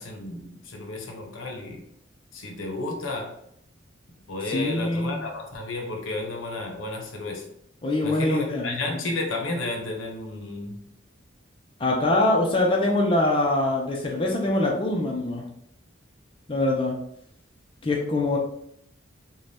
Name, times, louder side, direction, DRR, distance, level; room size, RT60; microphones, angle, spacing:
voice 1, 0.0-1.8 2.3-3.4 4.3-7.4 8.0-10.8, left 2 dB, 80° left, 2 dB, 0.7 m, -32 dB
voice 2, 4.4-5.3 7.8-9.1 11.8-15.5 16.5-17.0 17.8-18.4, left 2 dB, 25° left, -1 dB, 0.4 m, -24 dB
2.6 x 2.2 x 3.3 m, 0.70 s
head